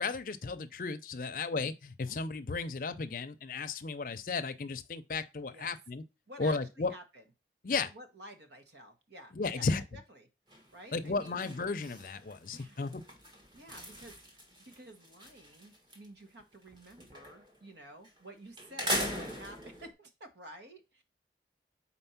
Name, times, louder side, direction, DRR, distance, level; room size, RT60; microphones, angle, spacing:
voice 1, 0.0-6.0 6.4-6.9 7.6-7.9 9.3-9.8 10.9-13.0, left 4 dB, 50° left, 0.5 m, -34 dB
voice 2, 5.4-5.7 6.3-7.2 7.7-10.0 10.7-11.4 12.5-12.8 13.5-14.1 14.8-21.0, right 1 dB, 75° right, 1.2 m, -51 dB
sound 1, 10.5-10.8 11.1-16.1 16.4-17.6 18.0-18.2 18.6-19.9, equal, 25° right, 1.3 m, -40 dB
4.4 x 4.2 x 5.7 m
head